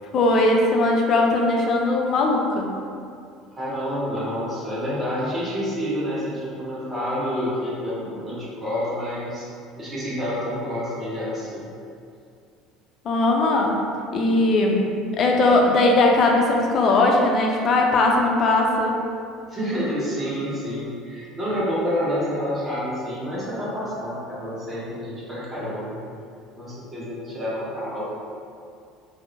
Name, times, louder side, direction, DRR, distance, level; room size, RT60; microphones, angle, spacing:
voice 1, 0.1-2.8 13.0-13.8 14.1-14.9 15.2-19.0, left 2 dB, 45° left, 0 dB, 0.4 m, -19 dB
voice 2, 3.5-9.5 9.8-11.7 19.5-26.0 26.6-28.1, equal, 25° right, -8 dB, 1.0 m, -28 dB
2.6 x 2.0 x 2.6 m, 2.4 s
hypercardioid pair, 70°, 0 cm